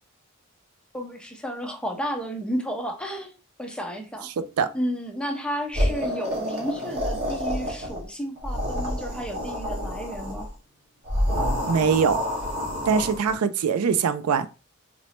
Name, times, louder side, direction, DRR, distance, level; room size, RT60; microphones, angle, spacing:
voice 1, 0.9-3.3 3.6-4.3 4.7-10.5, equal, 5° left, 0.7 m, -32 dB
voice 2, 4.2-4.7 11.7-12.2 12.9-14.5, right 6 dB, 80° right, 0.4 m, -22 dB
sound 1, 5.7-8.0 8.4-10.5 11.0-13.3, equal, 50° right, 1.7 m, -28 dB
3.9 x 3.0 x 3.1 m
head